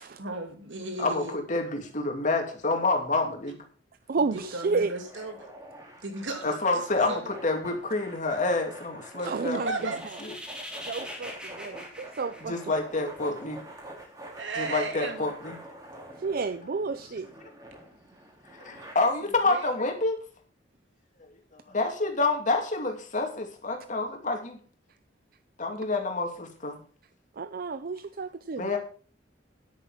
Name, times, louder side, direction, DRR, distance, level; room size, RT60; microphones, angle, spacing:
voice 1, 0.2-1.3 4.3-5.5 6.0-7.3 9.2-9.3 9.7-10.0 14.4-15.2 19.5-19.7, right 3 dB, 85° right, 2.7 m, -35 dB
voice 2, 1.0-3.6 6.4-9.9 10.2-10.3 11.6-11.8 12.4-13.6 14.6-15.6 18.6-20.2 21.7-24.6 25.6-26.8 28.6-28.8, left 3 dB, 45° left, 2.7 m, -28 dB
voice 3, 4.1-4.9 9.2-10.2 10.8-12.7 16.2-17.3 27.4-28.7, right 4 dB, 55° right, 0.5 m, -31 dB
sound 1, 4.2-18.9, right 1 dB, 20° right, 3.3 m, -46 dB
sound 2, 9.6-13.2, equal, 5° right, 2.6 m, -43 dB
10.5 x 8.5 x 5.8 m
head